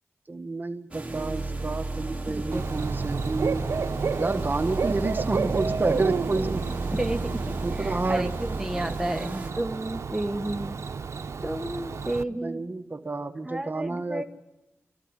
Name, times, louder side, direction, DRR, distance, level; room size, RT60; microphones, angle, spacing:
voice 1, 0.3-3.6 4.2-6.7 7.6-8.3 12.3-14.2, right 3 dB, 40° right, 6 dB, 1.5 m, -30 dB
sound 1, 0.9-9.5, right 2 dB, 25° right, 3.1 m, -33 dB
Bird / Cricket, 2.5-12.2, right 5 dB, 80° right, 0.7 m, -31 dB
voice 2, 6.6-10.8 11.4-12.6 13.4-14.2, right 1 dB, 5° right, 3 dB, 1.6 m, -32 dB
27.5 x 14.5 x 9.8 m, 0.97 s
wide cardioid pair, 95°, 5 cm